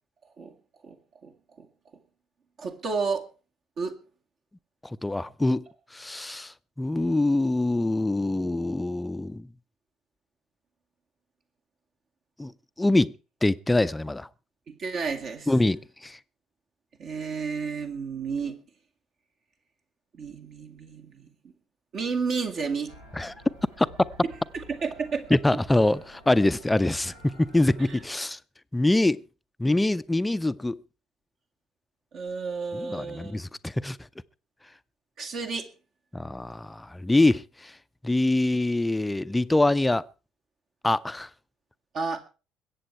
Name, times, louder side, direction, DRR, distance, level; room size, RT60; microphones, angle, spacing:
voice 1, 2.6-3.3 3.8-4.0 14.7-15.5 17.0-18.6 20.1-21.3 21.9-23.0 24.5-25.3 27.9-28.0 32.1-33.4 35.2-35.7 41.9-42.2, right 5 dB, 45° right, 2.2 m, -31 dB
voice 2, 5.0-5.6 5.9-9.5 12.4-12.5 12.8-13.1 13.4-14.3 15.5-16.2 23.2-23.3 23.8-23.9 25.3-28.4 28.7-29.2 29.6-30.8 32.7-34.0 36.1-37.7 38.0-40.0 40.8-41.3, left 2 dB, 10° left, 0.6 m, -24 dB
sound 1, 22.9-28.1, equal, 80° right, 3.0 m, -50 dB
21.5 x 8.7 x 4.6 m
figure-of-eight pair, 55°, 0 cm